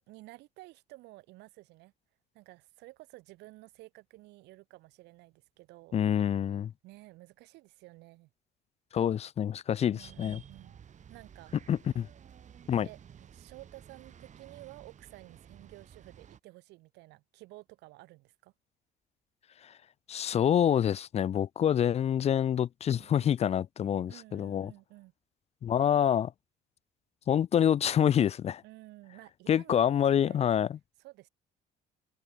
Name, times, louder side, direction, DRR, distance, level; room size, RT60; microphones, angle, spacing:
voice 1, 0.0-1.9 2.3-6.0 6.4-8.3 9.9-10.8 11.1-11.6 12.8-18.5 22.9-23.3 24.1-25.1 28.6-30.5 31.0-31.3, right 20 dB, 90° right, 7.1 m, -53 dB
voice 2, 5.9-6.7 8.9-10.4 11.7-12.1 12.7-12.9 19.6-19.7 20.1-24.7 25.6-26.3 27.3-28.6 29.5-30.8, left 9 dB, 40° left, 0.5 m, -27 dB
sound 1, 10.0-16.4, right 8 dB, 45° right, 4.1 m, -53 dB
cardioid pair, 110°, 17 cm